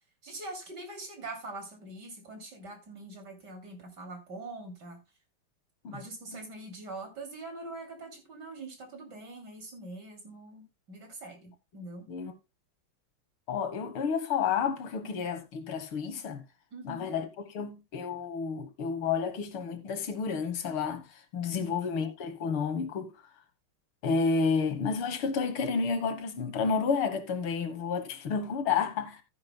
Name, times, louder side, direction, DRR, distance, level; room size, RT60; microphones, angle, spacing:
voice 1, 0.2-5.0 5.9-12.1 16.7-17.1 21.5-21.8, right 2 dB, 50° right, 3.4 m, -43 dB
voice 2, 13.5-16.4 16.8-17.3 17.5-21.0 21.3-23.1 24.0-29.2, left 5 dB, 80° left, 2.2 m, -30 dB
14.0 x 9.9 x 2.2 m
omnidirectional pair, 2.4 m